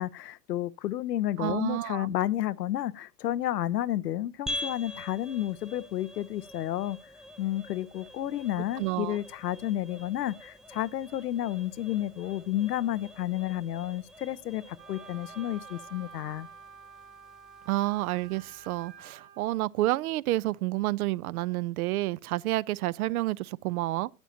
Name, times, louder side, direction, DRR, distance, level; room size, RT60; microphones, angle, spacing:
voice 1, 0.0-7.1 7.4-16.5, left 13 dB, 80° left, 0.6 m, -31 dB
voice 2, 1.4-2.1 8.8-9.2 17.7-24.1, right 17 dB, 65° right, 0.6 m, -29 dB
sound 1, 4.5-19.1, left 1 dB, ahead, 0.4 m, -45 dB
Wind instrument woodwind instrument, 14.8-19.4, right 5 dB, 85° right, 3.9 m, -49 dB
12.5 x 9.0 x 2.7 m
hypercardioid pair, 90°, 48 cm